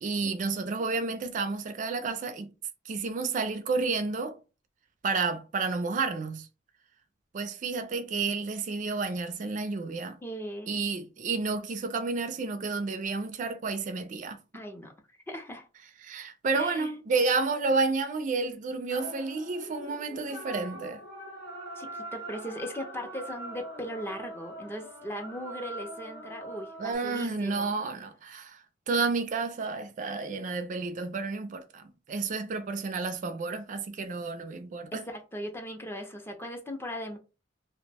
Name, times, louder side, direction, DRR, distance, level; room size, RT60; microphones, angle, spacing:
voice 1, 0.0-2.5 2.9-4.4 5.0-6.5 7.3-10.2 10.7-14.4 16.0-21.0 26.8-35.0, right 4 dB, 45° right, 0.4 m, -31 dB
voice 2, 10.2-10.8 14.5-14.9 15.3-15.7 16.5-16.9 21.8-27.7 34.9-37.2, equal, 10° left, 0.5 m, -38 dB
sound 1, 18.9-26.9, right 1 dB, 65° left, 1.1 m, -42 dB
2.8 x 2.1 x 3.2 m
head